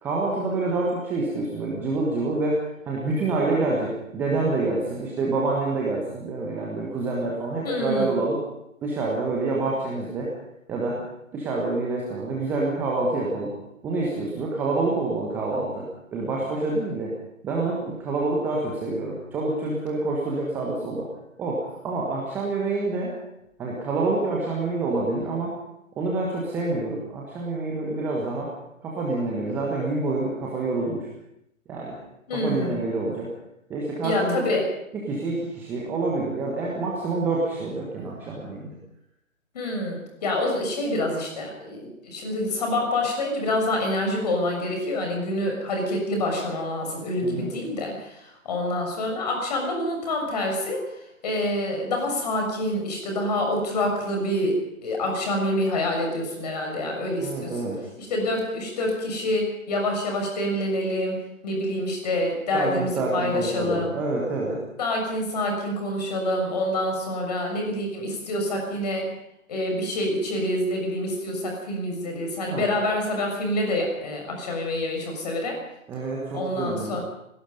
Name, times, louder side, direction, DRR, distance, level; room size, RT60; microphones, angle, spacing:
voice 1, 0.0-2.6 2.9-8.4 8.8-10.3 10.7-11.0 11.3-13.5 13.8-15.8 16.1-17.1 17.4-21.1 21.4-23.1 23.6-25.5 26.0-28.5 28.8-31.1 31.7-32.0 32.3-33.3 33.7-34.5 35.0-38.7 47.2-47.5 57.2-57.8 62.5-64.6 72.5-72.7 75.9-77.0, right 3 dB, 5° right, -3 dB, 1.3 m, -27 dB
voice 2, 7.6-8.2 32.3-32.8 34.0-34.6 39.5-50.8 51.2-54.5 54.8-57.6 58.0-64.0 64.8-69.1 69.5-75.6 76.3-77.0, left 1 dB, 30° left, 2 dB, 6.6 m, -27 dB
27.0 x 18.0 x 5.4 m, 0.82 s
figure-of-eight pair, 145°, 40 cm